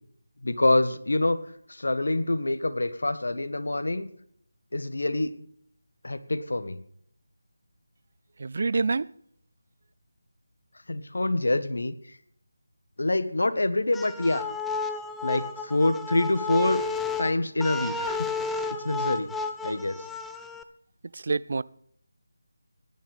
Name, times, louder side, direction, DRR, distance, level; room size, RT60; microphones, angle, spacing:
voice 1, 0.4-1.4 1.7-4.1 4.7-5.4 6.0-6.8 10.9-11.9 13.0-14.5 15.2-16.8 17.2-18.3 18.7-19.3 19.6-20.0, left 2 dB, 70° left, 1.5 m, -26 dB
voice 2, 8.4-9.1 21.1-21.6, right 4 dB, 50° right, 0.5 m, -27 dB
sound 1, 13.9-20.6, left 4 dB, 5° left, 0.7 m, -32 dB
19.5 x 11.0 x 3.5 m
figure-of-eight pair, 160°, 0 cm